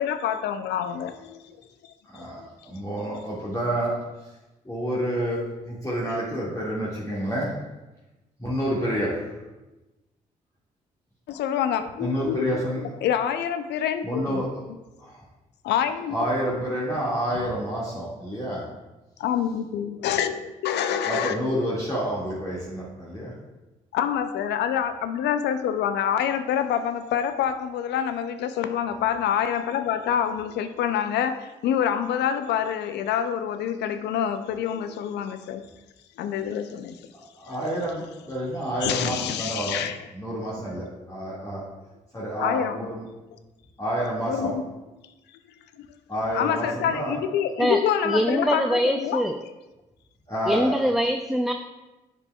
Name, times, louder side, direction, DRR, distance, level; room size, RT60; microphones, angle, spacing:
voice 1, 0.0-1.6 2.1-2.5 11.3-12.5 12.8-14.4 15.6-16.2 19.2-21.6 23.9-35.7 36.2-37.0 38.8-40.0 42.4-42.8 44.3-44.7 45.8-45.9 46.3-49.2, left 9 dB, 75° left, 10 dB, 0.4 m, -26 dB
voice 2, 2.1-4.3 4.6-7.6 8.4-9.4 12.0-12.9 14.0-14.6 15.0-15.2 16.1-18.6 20.0-20.2 21.0-23.4 37.1-39.8 40.1-41.6 42.1-43.1 43.8-44.5 46.1-47.2 50.3-50.8, equal, 20° left, -7 dB, 2.0 m, -29 dB
voice 3, 47.6-49.4 50.5-51.5, equal, ahead, 5 dB, 0.4 m, -23 dB
7.1 x 6.7 x 2.3 m, 1.1 s
hypercardioid pair, 40°, 17 cm